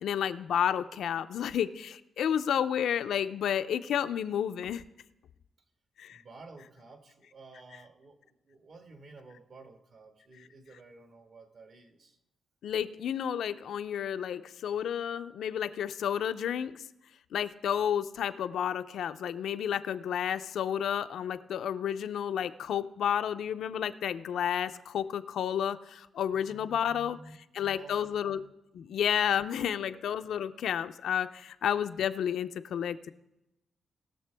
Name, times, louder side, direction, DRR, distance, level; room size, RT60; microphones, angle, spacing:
voice 1, 0.0-4.8 6.0-6.2 12.6-16.8 17.3-27.2 27.5-28.4 28.7-33.1, left 9 dB, 85° left, 10 dB, 0.5 m, -31 dB
voice 2, 6.1-12.2 26.3-27.3 27.7-28.4 29.6-30.0, right 3 dB, 55° right, 4 dB, 1.6 m, -52 dB
20.0 x 6.7 x 3.4 m, 0.91 s
wide cardioid pair, 135°, 0 cm